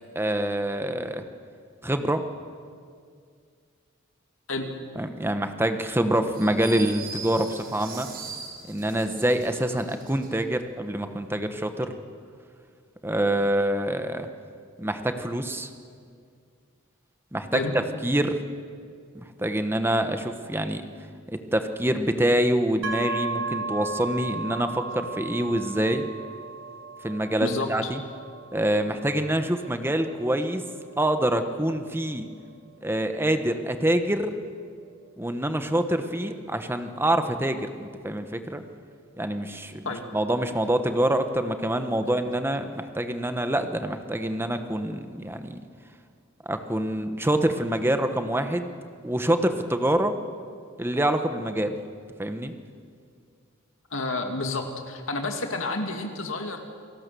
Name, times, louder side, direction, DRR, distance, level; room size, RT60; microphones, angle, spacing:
voice 1, 0.1-1.2 1.8-2.2 5.0-8.1 8.7-11.9 13.0-14.3 14.8-15.7 17.3-17.6 18.0-18.4 19.1-20.8 21.3-26.1 27.0-28.0 28.5-30.6 31.0-32.3 32.8-34.3 35.2-38.6 39.2-45.6 46.4-48.7 49.0-50.2 50.8-51.8 52.2-52.5, right 1 dB, 10° right, 8 dB, 1.2 m, -26 dB
sound 1, 6.3-10.3, right 5 dB, 45° right, 4.4 m, -40 dB
sound 2, 22.8-36.5, right 3 dB, 80° right, 3.4 m, -37 dB
voice 2, 27.4-27.9 39.8-40.0 42.0-42.1 53.9-56.7, left 2 dB, 70° left, 4 dB, 2.4 m, -30 dB
28.0 x 18.0 x 6.9 m, 2.2 s
head